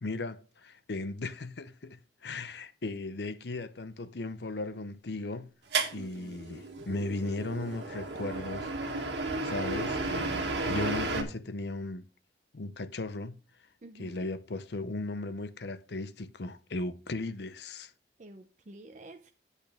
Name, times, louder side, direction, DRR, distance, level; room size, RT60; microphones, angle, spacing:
voice 1, 0.0-5.5 5.9-9.0 9.4-12.1 12.5-13.4 14.0-17.9, left 2 dB, 75° left, 0.7 m, -37 dB
sound 1, 5.7-11.2, right 3 dB, 90° right, 1.8 m, -33 dB
voice 2, 6.0-6.4 13.8-14.3 18.2-19.3, right 2 dB, 45° right, 0.6 m, -49 dB
8.4 x 8.2 x 3.5 m
head